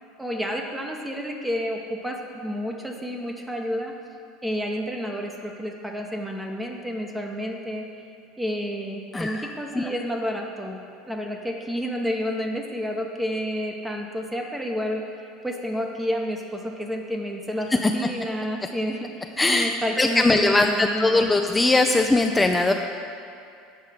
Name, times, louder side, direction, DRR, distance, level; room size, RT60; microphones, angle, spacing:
voice 1, 0.2-2.2 2.4-3.9 4.4-7.8 8.4-10.8 11.1-15.0 15.4-21.3, equal, 5° right, 1 dB, 0.8 m, -30 dB
voice 2, 9.1-9.9 17.8-17.9 19.4-19.7 20.0-22.7, left 2 dB, 15° left, 4 dB, 0.4 m, -20 dB
8.2 x 5.5 x 5.0 m, 2.4 s
hypercardioid pair, 75°, 0 cm